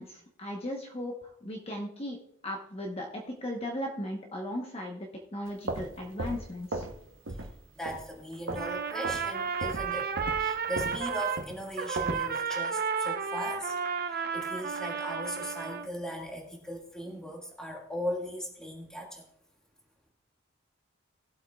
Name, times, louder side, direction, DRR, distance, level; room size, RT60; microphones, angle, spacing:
voice 1, 0.0-2.2 2.4-6.8, left 1 dB, 30° left, 1 dB, 1.0 m, -37 dB
sound 1, 5.5-7.0 7.3-7.6 7.8-8.7 9.0-9.3 9.6-12.3, right 2 dB, 75° right, 1.0 m, -36 dB
voice 2, 7.8-13.8 14.1-19.2, equal, 5° left, 0 dB, 1.9 m, -38 dB
Trumpet, 8.5-11.4 11.8-15.9, right 6 dB, 50° right, 0.7 m, -32 dB
19.0 x 8.0 x 2.4 m, 0.77 s
head